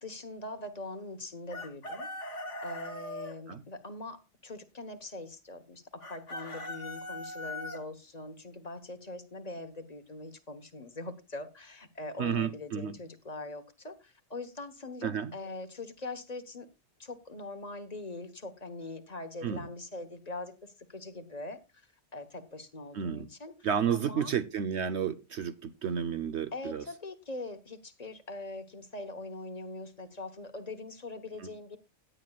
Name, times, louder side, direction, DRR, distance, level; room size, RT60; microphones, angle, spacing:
voice 1, 0.0-2.1 2.6-16.7 17.0-21.6 22.1-23.5 23.9-24.3 26.5-31.8, left 2 dB, 30° left, 1.3 m, -42 dB
Chicken rooster, 1.5-3.3 6.0-7.8, left 1 dB, 55° left, 2.2 m, -40 dB
voice 2, 12.2-12.9 15.0-15.3 19.4-19.7 22.9-23.3 23.6-26.8 31.4-31.5, right 8 dB, 60° right, 0.9 m, -31 dB
17.0 x 10.0 x 2.4 m
omnidirectional pair, 1.5 m